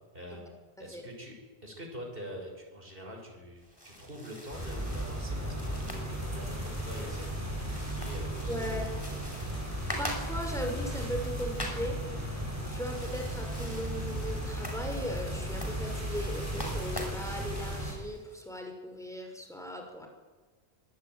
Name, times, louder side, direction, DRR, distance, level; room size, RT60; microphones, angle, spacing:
voice 1, 0.1-0.5 0.8-1.3 1.6-8.8 9.0-9.2, equal, 55° right, 1 dB, 6.4 m, -45 dB
sound 1, 3.6-18.4, equal, 20° left, 6.0 m, -45 dB
sound 2, 4.5-17.9, right 1 dB, 15° right, 7.7 m, -35 dB
voice 2, 8.4-8.9 10.0-12.0 12.4-20.1, equal, 5° left, 3 dB, 6.3 m, -38 dB
25.0 x 20.5 x 9.4 m, 1.3 s
omnidirectional pair, 1.1 m